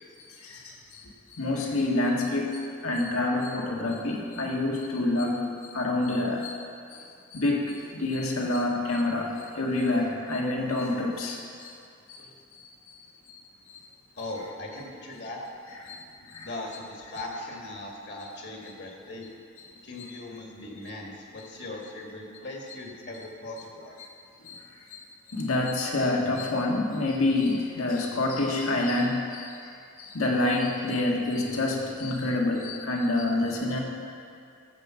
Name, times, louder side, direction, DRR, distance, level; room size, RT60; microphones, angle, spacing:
voice 1, 0.4-6.6 6.9-11.8 12.1-12.7 12.9-13.4 13.7-13.8 15.8-16.5 24.0-24.1 24.4-24.6 24.9-29.7 30.0-33.8, left 2 dB, 85° left, -1 dB, 1.7 m, -28 dB
voice 2, 14.2-15.4 16.4-19.3 19.8-24.0, left 2 dB, 50° left, -1 dB, 1.6 m, -39 dB
14.0 x 5.1 x 7.4 m, 2.4 s
head